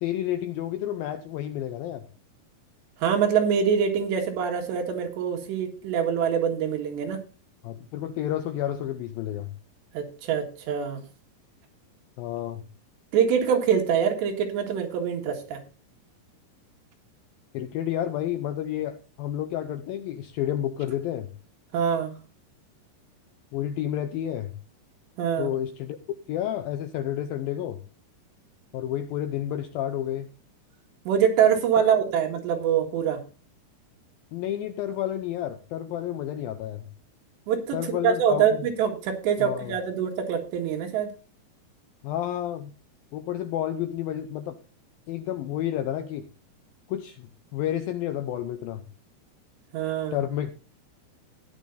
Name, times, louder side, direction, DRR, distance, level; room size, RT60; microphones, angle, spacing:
voice 1, 0.0-2.0 7.6-9.5 12.2-12.6 17.5-21.3 23.5-24.6 25.4-26.0 26.3-27.8 28.7-30.3 31.8-32.0 34.3-36.9 37.7-38.6 39.4-39.8 42.0-42.7 43.1-44.6 45.1-46.3 46.9-47.3 47.5-48.8 50.1-50.5, left 11 dB, 80° left, 7 dB, 2.1 m, -30 dB
voice 2, 3.0-7.2 9.9-11.0 13.1-15.6 21.7-22.1 25.2-25.5 31.1-33.2 37.5-41.1 49.7-50.2, right 8 dB, 80° right, 3 dB, 4.0 m, -24 dB
16.0 x 10.5 x 2.7 m, 0.33 s
omnidirectional pair, 5.0 m